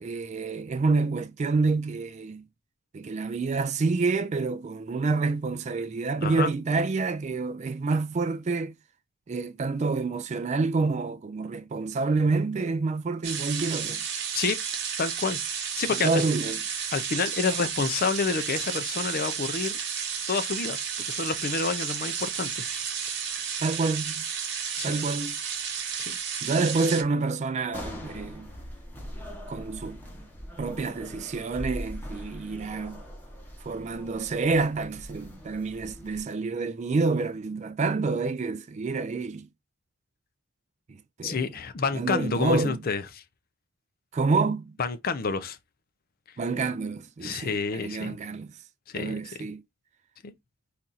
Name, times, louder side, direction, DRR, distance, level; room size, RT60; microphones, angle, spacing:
voice 1, 0.0-2.5 2.9-8.7 9.3-14.0 16.0-16.6 23.6-24.2 24.8-25.4 26.4-28.5 29.5-30.0 30.6-33.0 33.6-39.5 41.2-41.4 41.9-42.8 44.1-44.8 46.4-48.5 48.9-49.6, right 3 dB, 35° right, 0.3 m, -28 dB
voice 2, 6.2-6.5 14.3-14.6 15.0-15.4 15.8-16.2 16.9-19.8 20.3-20.8 21.1-22.5 24.8-24.9 26.0-26.2 41.2-43.2 44.8-45.6 47.2-48.2 48.9-49.2 50.2-50.3, left 4 dB, 45° left, 0.5 m, -29 dB
sound 1, 13.2-27.0, right 7 dB, 55° right, 0.8 m, -32 dB
sound 2, 27.7-36.2, equal, 10° left, 1.0 m, -41 dB
4.2 x 2.5 x 3.9 m
head